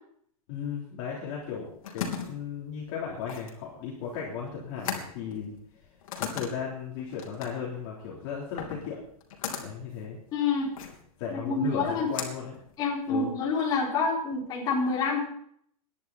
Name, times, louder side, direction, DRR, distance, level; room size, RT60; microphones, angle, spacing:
voice 1, 0.5-5.5 6.2-9.0 9.6-10.2 11.2-12.6 13.1-13.3, left 7 dB, 35° left, -4 dB, 3.3 m, -36 dB
sound 1, 1.4-13.3, left 7 dB, 65° left, 3.3 m, -40 dB
voice 2, 10.3-10.7 11.3-12.1 12.8-15.2, left 4 dB, 20° left, -4 dB, 4.3 m, -27 dB
21.0 x 10.5 x 4.1 m, 0.66 s
supercardioid pair, 170°, 19 cm